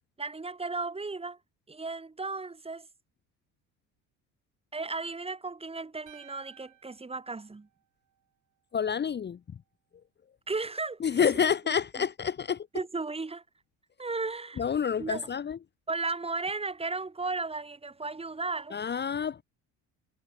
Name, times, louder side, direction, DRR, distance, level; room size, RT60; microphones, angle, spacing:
voice 1, 0.2-1.4 1.7-2.9 4.7-7.7 10.5-12.1 12.7-13.4 14.0-14.6 15.0-15.2 15.9-18.8, right 3 dB, 15° right, 2.2 m, -35 dB
sound 1, 6.1-8.3, right 12 dB, 55° right, 6.6 m, -57 dB
voice 2, 8.7-9.4 11.0-12.7 14.6-15.6 18.7-19.4, left 7 dB, 30° left, 1.0 m, -28 dB
supercardioid pair, 100°, 35 cm